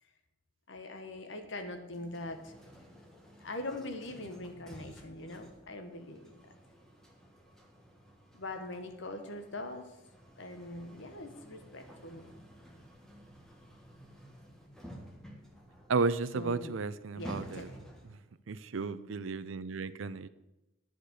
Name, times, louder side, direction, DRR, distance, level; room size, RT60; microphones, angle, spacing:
voice 1, 0.7-2.6 3.4-6.4 8.3-9.9 10.4-12.4 16.3-16.8 17.1-17.8, left 2 dB, 65° left, 7 dB, 1.2 m, -42 dB
sound 1, 1.9-18.3, equal, 5° left, 1.3 m, -52 dB
voice 2, 15.9-17.7 18.5-20.3, right 4 dB, 70° right, 15 dB, 0.5 m, -33 dB
11.0 x 5.0 x 7.9 m, 0.98 s
head